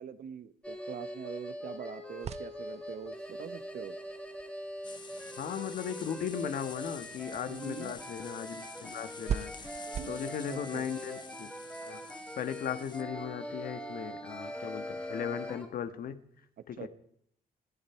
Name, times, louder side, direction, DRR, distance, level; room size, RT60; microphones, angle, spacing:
voice 1, 0.0-3.9 7.5-7.9 10.0-10.1 10.5-10.8 16.8-16.9, right 8 dB, 60° right, 13 dB, 1.2 m, -43 dB
sound 1, 0.6-15.7, equal, 5° left, 2.3 m, -42 dB
sound 2, 2.2-10.2, right 8 dB, 40° right, 0.5 m, -43 dB
sound 3, 4.8-13.0, left 4 dB, 25° left, 1.4 m, -49 dB
voice 2, 5.4-11.5 11.8-16.9, left 8 dB, 60° left, 10 dB, 1.7 m, -38 dB
27.0 x 11.0 x 4.6 m, 0.67 s
cardioid pair, 155°, 17 cm